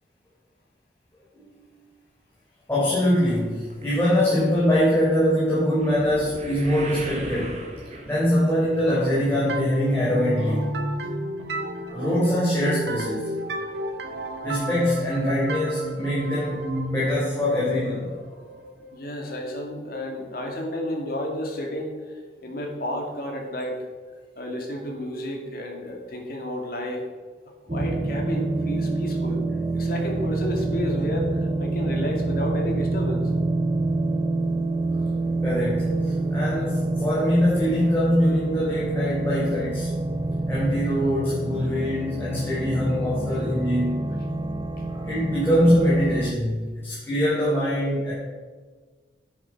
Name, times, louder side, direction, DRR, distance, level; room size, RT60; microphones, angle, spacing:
voice 1, 2.7-7.6 8.1-10.7 11.9-13.5 14.4-18.2 34.9-35.0 35.4-39.9 40.5-44.0 44.9-48.1, equal, 15° left, -9 dB, 3.9 m, -23 dB
sound 1, 3.7-10.1 10.4-10.8 11.4-11.5 11.8-11.9, right 1 dB, 40° right, 1.9 m, -40 dB
sound 2, 9.5-19.0, right 1 dB, 70° right, 1.4 m, -32 dB
voice 2, 18.9-22.0 22.4-23.8 24.4-27.0 27.6-29.4 29.7-33.3, left 1 dB, 55° left, 1 dB, 2.5 m, -31 dB
sound 3, 27.7-46.3, right 2 dB, 25° right, 0.5 m, -27 dB
10.5 x 9.2 x 6.2 m, 1.5 s
head